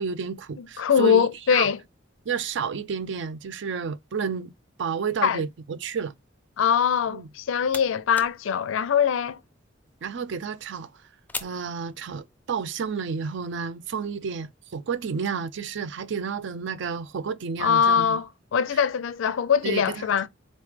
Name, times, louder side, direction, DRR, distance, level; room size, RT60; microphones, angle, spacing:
voice 1, 0.0-1.7 2.3-4.5 4.8-6.1 7.1-7.3 10.0-10.9 11.4-18.2 19.6-20.1, right 6 dB, 65° right, 0.4 m, -31 dB
voice 2, 0.6-1.8 5.2-5.4 6.6-9.4 17.6-20.3, left 7 dB, 75° left, 0.4 m, -22 dB
sound 1, 7.2-12.5, left 3 dB, 10° left, 0.4 m, -43 dB
4.0 x 3.2 x 3.2 m
head